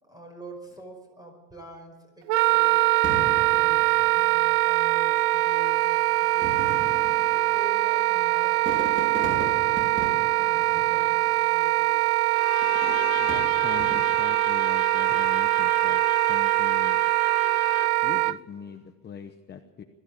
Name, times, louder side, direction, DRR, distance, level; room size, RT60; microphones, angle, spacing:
voice 1, 0.0-6.5 7.3-11.9 15.1-15.2, right 1 dB, 10° right, 4 dB, 5.2 m, -45 dB
Wind instrument woodwind instrument, 2.3-18.4, right 19 dB, 85° right, 0.7 m, -23 dB
Fireworks, 3.0-4.7 5.5-5.6 6.3-11.6 12.6-14.4 15.0-15.4, right 2 dB, 25° right, 4.6 m, -38 dB
Bowed string instrument, 12.3-18.2, left 19 dB, 55° left, 0.6 m, -38 dB
voice 2, 13.2-17.0 18.0-19.8, left 7 dB, 25° left, 5 dB, 1.0 m, -42 dB
21.0 x 15.0 x 8.6 m, 1.3 s
cardioid pair, 155°, 44 cm